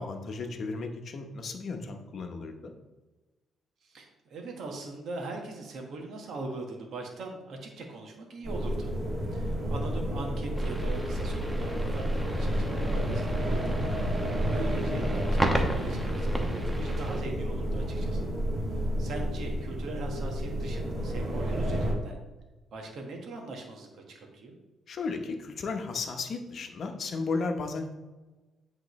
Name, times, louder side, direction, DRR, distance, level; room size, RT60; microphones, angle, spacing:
voice 1, 0.0-2.7 24.9-27.9, left 4 dB, 55° left, 4 dB, 0.9 m, -34 dB
voice 2, 3.8-8.9 9.3-13.8 14.1-18.3 18.7-22.2 22.7-24.6, right 3 dB, 70° right, 1 dB, 1.5 m, -41 dB
sound 1, 8.4-21.9, equal, 45° right, 2.2 m, -30 dB
sound 2, 10.6-17.2, equal, 10° right, 1.1 m, -35 dB
10.5 x 3.8 x 3.2 m, 1.2 s
cardioid pair, 90°, 0 cm